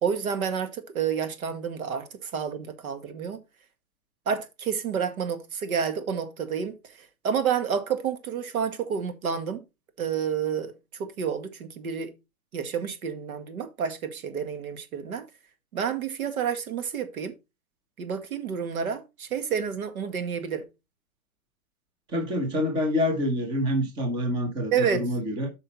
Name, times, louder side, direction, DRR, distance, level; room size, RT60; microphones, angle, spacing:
voice 1, 0.0-3.4 4.3-6.8 7.2-9.6 10.0-10.7 11.0-12.1 12.5-15.2 15.7-17.3 18.0-20.7 24.7-25.1, right 7 dB, 85° right, 2.0 m, -29 dB
voice 2, 22.1-25.5, left 1 dB, 10° right, 0.9 m, -27 dB
8.5 x 5.5 x 4.1 m
supercardioid pair, 175°, 42 cm